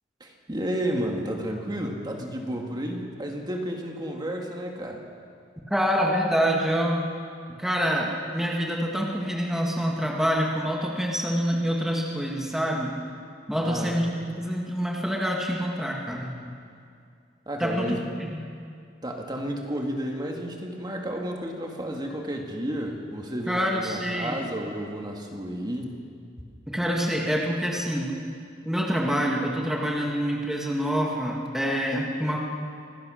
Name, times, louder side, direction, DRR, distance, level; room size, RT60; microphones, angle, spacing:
voice 1, 0.2-5.0 13.6-13.9 17.5-18.0 19.0-26.0, right 1 dB, 25° right, 1 dB, 2.0 m, -32 dB
voice 2, 5.7-7.0 7.6-12.9 13.5-16.4 17.6-17.9 18.2-18.4 23.5-24.4 26.7-28.1 28.7-32.5, equal, ahead, -1 dB, 1.9 m, -26 dB
24.5 x 17.0 x 6.5 m, 2.3 s
head